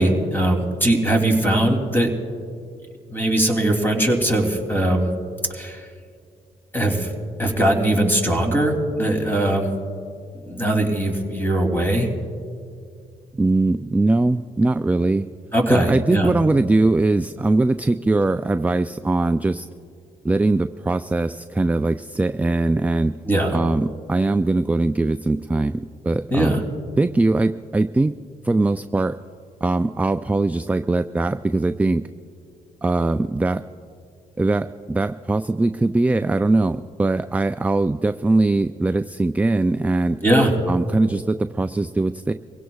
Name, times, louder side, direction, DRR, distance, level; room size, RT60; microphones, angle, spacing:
voice 1, 0.0-2.1 3.1-5.1 5.5-5.9 6.7-7.1 7.4-9.7 10.5-12.1 15.5-16.3 23.3-23.6 26.3-26.6 40.2-40.5, right 1 dB, 15° left, 2 dB, 2.9 m, -20 dB
voice 2, 13.3-15.3 15.7-19.7 20.2-23.2 23.5-26.6 27.0-28.1 28.4-29.2 29.6-32.1 32.8-33.6 34.4-40.2 40.7-42.3, right 2 dB, 10° right, 10 dB, 0.3 m, -21 dB
25.5 x 16.5 x 2.4 m, 2.3 s
cardioid pair, 80°, 16 cm